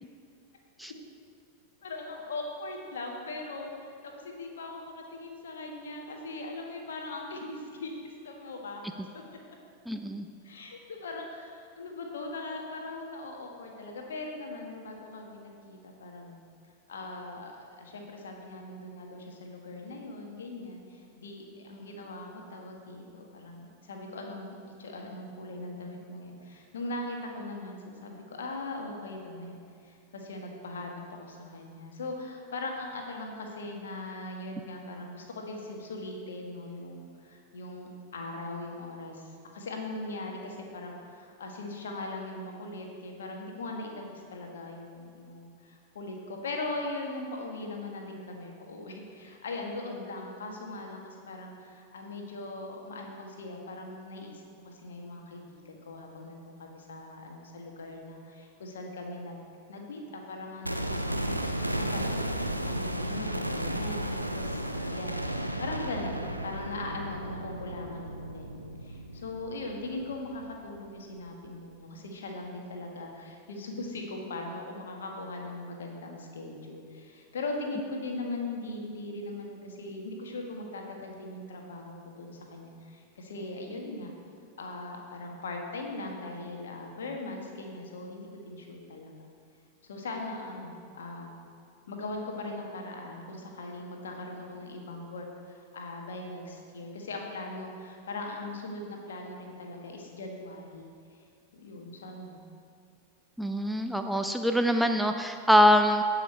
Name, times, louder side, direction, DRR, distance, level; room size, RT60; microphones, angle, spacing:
voice 1, 1.8-8.8 9.1-9.2 10.4-16.4 16.9-59.4 59.7-84.1 84.6-89.1 89.8-91.4 91.9-100.9 101.5-102.4, left 2 dB, 65° left, 2 dB, 1.5 m, -40 dB
voice 2, 9.9-10.3 103.4-106.0, equal, ahead, 5 dB, 0.5 m, -24 dB
sound 1, 60.6-70.7 70.9-71.0, right 1 dB, 90° right, 0.5 m, -34 dB
16.0 x 5.8 x 4.4 m, 2.3 s
figure-of-eight pair, 90°, 0 cm